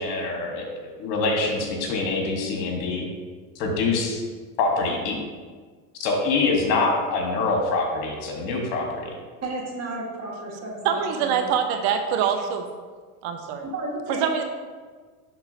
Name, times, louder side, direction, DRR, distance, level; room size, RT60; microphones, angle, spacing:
voice 1, 0.0-3.1 3.5-4.2 4.6-5.2 6.0-9.1, left 3 dB, 70° left, 1 dB, 1.6 m, -25 dB
voice 2, 9.4-11.5 13.7-14.4, right 2 dB, 30° right, -2 dB, 1.8 m, -32 dB
voice 3, 10.8-12.7 13.2-13.6 14.1-14.4, right 7 dB, 60° right, 5 dB, 0.9 m, -24 dB
10.5 x 3.8 x 2.8 m, 1.5 s
supercardioid pair, 100°, 49 cm